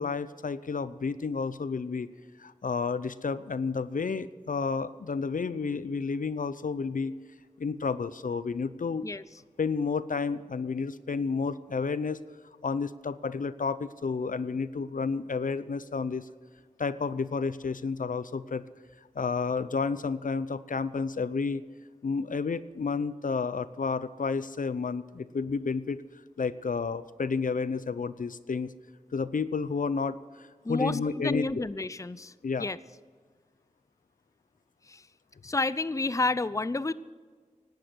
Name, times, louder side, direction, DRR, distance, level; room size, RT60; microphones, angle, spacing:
voice 1, 0.0-2.1 2.4-7.1 7.6-9.1 9.6-12.2 12.6-16.3 16.8-18.6 19.2-21.6 22.0-26.0 26.4-28.7 29.1-31.5 32.4-32.7, left 4 dB, 75° left, 15 dB, 0.6 m, -31 dB
voice 2, 30.6-32.3 32.6-32.8 34.9-35.0 35.4-36.9, left 3 dB, 25° left, 17 dB, 0.5 m, -30 dB
17.5 x 12.0 x 6.2 m, 1.5 s
wide cardioid pair, 45°, 14 cm